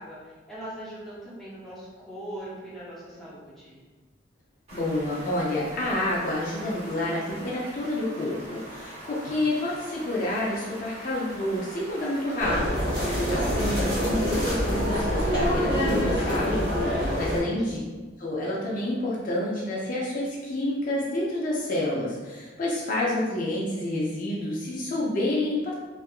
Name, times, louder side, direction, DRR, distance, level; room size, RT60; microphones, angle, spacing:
voice 1, 0.0-3.8 17.3-17.8, right 1 dB, ahead, -10 dB, 0.7 m, -41 dB
voice 2, 4.7-17.8 18.2-25.7, left 1 dB, 45° left, -5 dB, 0.4 m, -29 dB
Stream, 4.7-12.4, right 1 dB, 35° right, 1.0 m, -42 dB
sound 1, 12.4-17.4, equal, 65° right, 1.2 m, -25 dB
2.7 x 2.4 x 2.3 m, 1.3 s
head